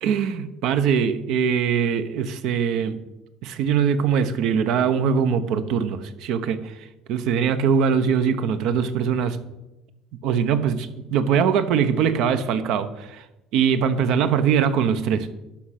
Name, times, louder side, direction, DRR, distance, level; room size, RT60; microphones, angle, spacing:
voice 1, 0.0-3.0 3.4-6.7 7.1-9.4 10.2-13.2 13.5-15.3, right 7 dB, 75° right, 10 dB, 0.8 m, -22 dB
12.0 x 5.0 x 5.8 m, 0.97 s
supercardioid pair, 95°, 0 cm